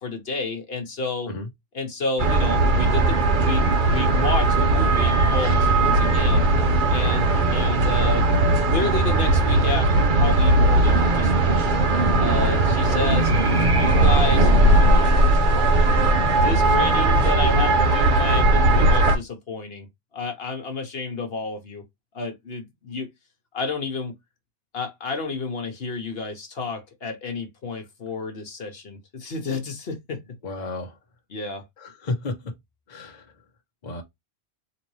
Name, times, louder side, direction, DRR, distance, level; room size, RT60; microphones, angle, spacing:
voice 1, 0.0-1.3 1.7-6.5 6.9-8.3 8.7-11.7 12.2-13.3 13.7-15.1 15.7-19.9 20.1-21.8 22.1-23.1 23.5-24.1 24.7-30.2 31.3-31.7, left 3 dB, 65° left, 1.2 m, -31 dB
sound 1, 2.2-19.2, right 2 dB, 50° right, 0.9 m, -18 dB
voice 2, 30.4-30.9 31.8-32.5 32.9-33.3 33.8-34.0, left 2 dB, 40° left, 1.0 m, -32 dB
4.1 x 3.0 x 3.2 m
omnidirectional pair, 1.1 m